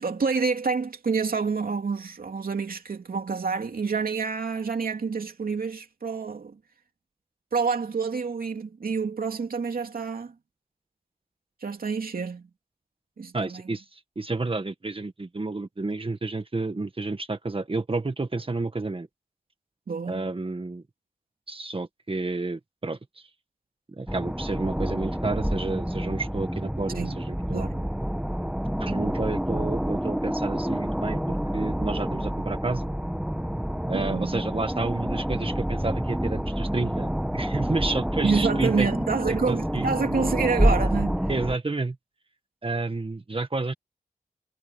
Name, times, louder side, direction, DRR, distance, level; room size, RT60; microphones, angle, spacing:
voice 1, 0.0-6.6 7.5-10.3 11.6-12.5 13.2-13.6 19.9-20.3 27.0-27.2 27.5-27.9 33.9-34.4 38.2-41.3, right 5 dB, 90° right, 2.9 m, -28 dB
voice 2, 13.3-19.1 20.1-20.8 21.5-23.0 24.0-27.7 28.8-32.8 33.9-38.9 39.3-39.9 41.3-42.0 42.6-43.7, right 3 dB, 40° right, 1.7 m, -30 dB
sound 1, 24.1-41.6, equal, 5° right, 1.4 m, -28 dB
wide cardioid pair, 75°, 15 cm